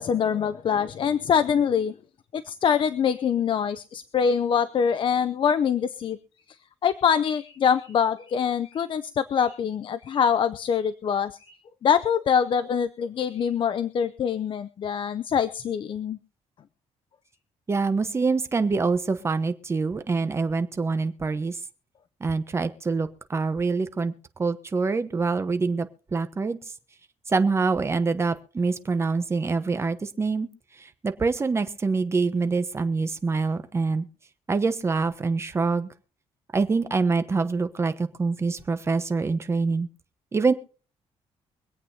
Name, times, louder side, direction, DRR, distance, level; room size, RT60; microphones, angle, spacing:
voice 1, 0.0-1.9 2.3-6.2 6.8-11.5 11.8-16.2, left 7 dB, 45° left, 12 dB, 0.6 m, -24 dB
voice 2, 17.7-21.6 22.2-24.1 24.4-26.6 27.3-30.5 30.8-34.1 34.5-35.9 36.5-39.9 40.3-40.5, right 4 dB, 25° right, 10 dB, 1.0 m, -25 dB
24.5 x 8.6 x 2.8 m, 0.40 s
cardioid pair, 135°, 11 cm